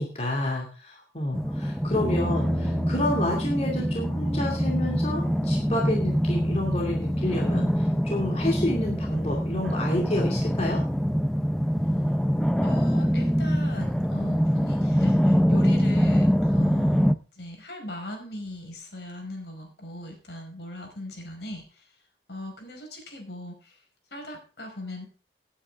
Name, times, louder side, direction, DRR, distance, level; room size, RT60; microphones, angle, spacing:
voice 1, 0.0-10.8, left 1 dB, 35° left, 0 dB, 2.5 m, -29 dB
sound 1, 1.3-17.1, equal, 5° left, 0.5 m, -24 dB
sound 2, 2.0-15.1, equal, 25° right, 7.3 m, -35 dB
voice 2, 12.6-21.9 22.3-23.8 24.1-25.0, left 1 dB, 70° left, 3 dB, 5.1 m, -39 dB
17.5 x 9.3 x 3.6 m, 0.35 s
head